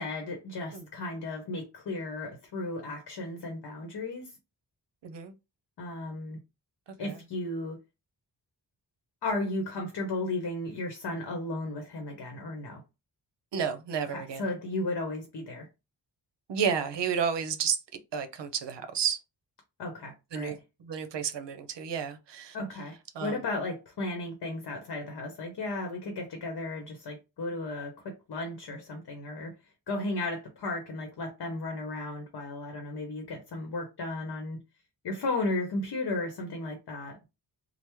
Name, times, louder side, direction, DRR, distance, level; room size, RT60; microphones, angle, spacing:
voice 1, 0.0-4.3 5.8-6.4 7.0-7.8 9.2-12.8 14.1-15.7 19.8-20.5 22.5-29.5 29.9-34.6 35.0-37.2, left 2 dB, 60° left, 0.8 m, -34 dB
voice 2, 5.0-5.3 7.0-7.2 13.5-14.5 16.5-17.8 18.1-19.2 20.3-22.6 23.1-23.4, right 7 dB, 75° right, 0.7 m, -31 dB
3.3 x 2.0 x 3.0 m
wide cardioid pair, 165°, 43 cm